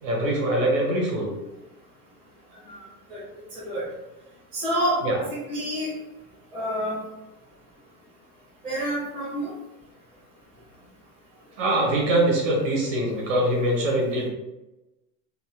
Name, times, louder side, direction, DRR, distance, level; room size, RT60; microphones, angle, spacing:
voice 1, 0.0-1.3 5.0-5.2 11.6-14.3, right 1 dB, 50° right, -2 dB, 1.5 m, -23 dB
voice 2, 4.5-5.9 6.5-7.0 8.6-9.5, equal, 10° right, -9 dB, 0.7 m, -28 dB
4.1 x 2.4 x 3.6 m, 1.0 s
supercardioid pair, 180°, 45 cm